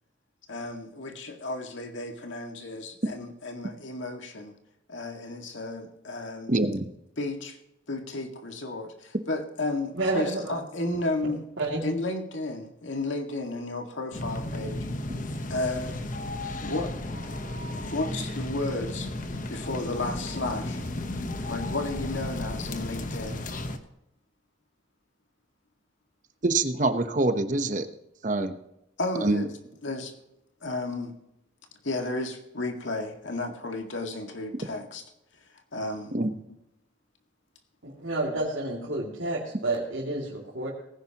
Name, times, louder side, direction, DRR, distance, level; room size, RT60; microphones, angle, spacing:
voice 1, 0.5-4.5 4.9-6.6 7.2-7.6 7.9-11.5 11.8-14.9 15.5-16.0 16.6-16.9 17.8-19.1 19.5-20.8 21.5-23.4 29.0-29.5 29.8-30.1 30.6-31.1 31.8-35.0 35.7-36.2, left 2 dB, 75° left, 4 dB, 2.0 m, -33 dB
voice 2, 6.5-6.9 26.4-27.9 28.2-28.6 29.2-29.5 36.1-36.3, right 2 dB, 40° right, 9 dB, 1.0 m, -25 dB
voice 3, 9.9-10.6 11.2-11.8 37.8-40.7, right 2 dB, 90° right, -6 dB, 2.6 m, -30 dB
sound 1, 14.1-23.8, left 1 dB, 45° left, 1.1 m, -34 dB
18.5 x 10.5 x 3.0 m, 0.84 s
head